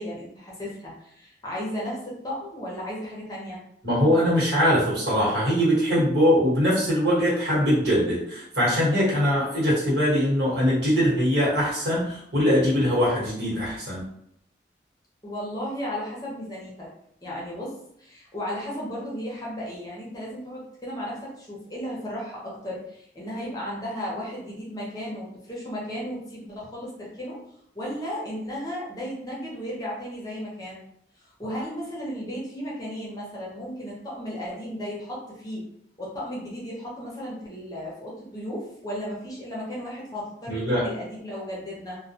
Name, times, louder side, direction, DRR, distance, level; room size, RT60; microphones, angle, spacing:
voice 1, 0.0-3.6 15.2-16.9 17.2-27.4 27.7-30.8 31.2-35.6 36.0-42.0, equal, 20° left, -5 dB, 0.6 m, -34 dB
voice 2, 3.8-14.0 40.5-40.9, equal, 70° right, -8 dB, 1.2 m, -22 dB
2.2 x 2.2 x 2.7 m, 0.73 s
head